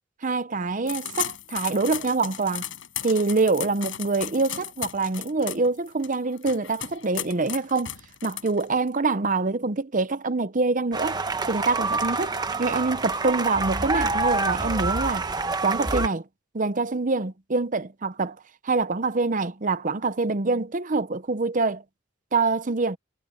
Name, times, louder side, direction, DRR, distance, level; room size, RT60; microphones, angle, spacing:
voice 1, 0.2-2.7 3.0-7.9 8.2-11.2 11.5-15.3 15.6-16.2 16.5-18.4 18.6-21.8 22.3-23.0, right 3 dB, 40° right, 0.8 m, -25 dB
sound 1, 0.9-8.9, left 11 dB, 70° left, 7.9 m, -35 dB
sound 2, 10.9-16.1, right 3 dB, 20° right, 1.1 m, -27 dB
head